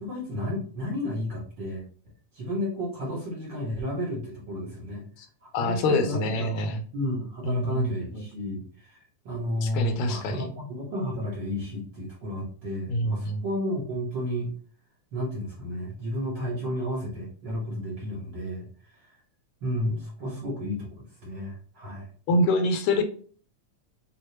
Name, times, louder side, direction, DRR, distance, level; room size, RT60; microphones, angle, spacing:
voice 1, 0.0-1.8 2.3-5.1 5.4-14.5 15.1-19.1 19.6-22.1, left 1 dB, 50° right, -5 dB, 1.4 m, -32 dB
voice 2, 5.5-6.8 7.4-8.2 9.6-10.5 12.9-13.4 22.3-23.0, left 2 dB, 80° left, 8 dB, 1.9 m, -26 dB
6.6 x 2.4 x 2.8 m, 0.43 s
omnidirectional pair, 3.3 m